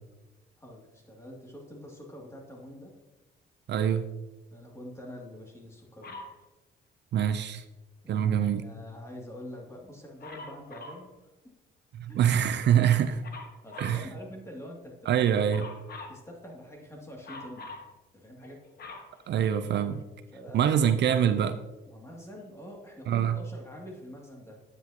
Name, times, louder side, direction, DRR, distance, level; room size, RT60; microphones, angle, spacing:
voice 1, 0.6-2.9 4.5-6.2 8.0-8.3 8.6-11.6 12.1-13.0 13.6-15.1 15.6-15.7 16.1-17.7 18.1-18.6 20.3-21.0 21.9-24.6, left 1 dB, 15° left, -1 dB, 2.4 m, -45 dB
voice 2, 3.7-4.1 7.1-7.6 8.1-8.6 12.0-13.1 13.8-14.0 15.1-15.6 19.3-20.0 20.5-21.6 23.1-23.4, right 9 dB, 60° right, 11 dB, 0.5 m, -24 dB
Dog, 6.0-6.4 10.2-11.1 13.2-14.1 15.5-16.2 17.2-17.9 18.4-19.9 20.7-20.8, left 3 dB, 50° left, 1.4 m, -44 dB
9.3 x 8.2 x 2.9 m, 1.1 s
cardioid pair, 90°, 20 cm